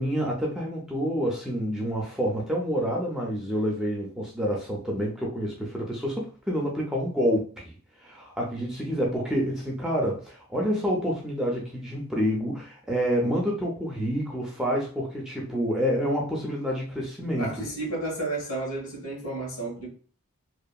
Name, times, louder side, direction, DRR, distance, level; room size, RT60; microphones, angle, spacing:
voice 1, 0.0-7.7 8.0-17.5, equal, ahead, 0.4 m, -28 dB
voice 2, 17.4-19.9, right 2 dB, 60° left, 1.3 m, -32 dB
2.7 x 2.4 x 2.2 m
head